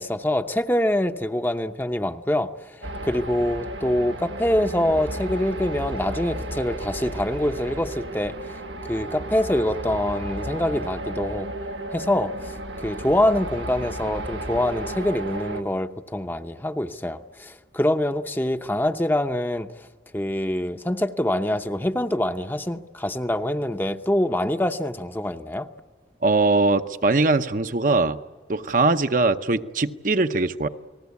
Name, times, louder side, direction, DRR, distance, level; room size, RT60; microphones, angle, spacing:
voice 1, 0.0-8.5 8.9-11.5 11.9-12.6 12.8-19.7 20.1-25.7, left 1 dB, 10° left, 7 dB, 0.7 m, -25 dB
sound 1, 2.8-15.6, right 1 dB, 90° right, 1.5 m, -33 dB
voice 2, 26.2-28.2 28.5-30.7, right 3 dB, 45° right, 9 dB, 0.8 m, -21 dB
29.5 x 20.0 x 8.4 m, 1.4 s
head